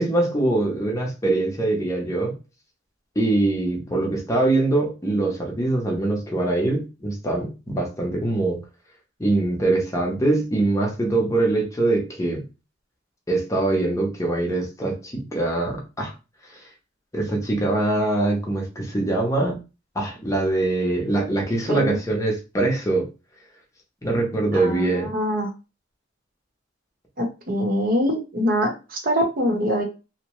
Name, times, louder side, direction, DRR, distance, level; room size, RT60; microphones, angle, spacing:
voice 1, 0.0-2.4 3.2-8.6 9.2-12.4 13.3-16.1 16.5-16.6 17.1-19.6 19.9-23.1 24.0-25.1, right 2 dB, 15° left, 0 dB, 0.7 m, -23 dB
voice 2, 21.7-22.0 24.5-25.5 27.2-29.8, equal, 50° right, 3 dB, 0.8 m, -24 dB
2.8 x 2.0 x 3.0 m, 0.29 s
head